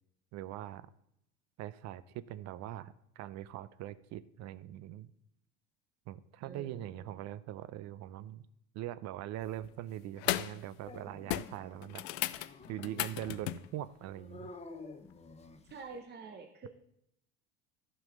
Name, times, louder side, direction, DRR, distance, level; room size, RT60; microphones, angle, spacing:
voice 1, 0.3-0.9 1.6-5.1 6.1-8.5 8.7-14.6, right 13 dB, 60° right, 17 dB, 0.7 m, -42 dB
voice 2, 6.4-7.2 15.7-16.7, right 5 dB, 35° right, 4 dB, 1.1 m, -48 dB
sound 1, 9.4-9.7 10.2-10.6 10.9-11.0 11.3-13.7 15.7-15.8, left 17 dB, 80° left, 0.5 m, -36 dB
Dog, 10.9-16.0, left 3 dB, 20° left, 0.9 m, -52 dB
11.0 x 5.6 x 5.2 m, 0.76 s
supercardioid pair, 85°, 31 cm